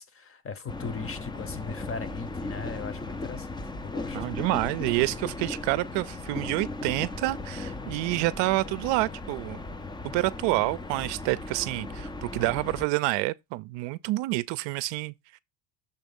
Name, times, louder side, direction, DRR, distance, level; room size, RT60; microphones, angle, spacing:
voice 1, 0.0-3.5 3.8-4.2, left 5 dB, 30° left, 0.8 m, -38 dB
sound 1, 0.7-12.9, left 2 dB, 10° left, 0.4 m, -37 dB
voice 2, 4.1-9.6 10.1-15.1, right 20 dB, 65° right, 0.5 m, -28 dB
6.9 x 3.4 x 5.3 m
supercardioid pair, 110°, 48 cm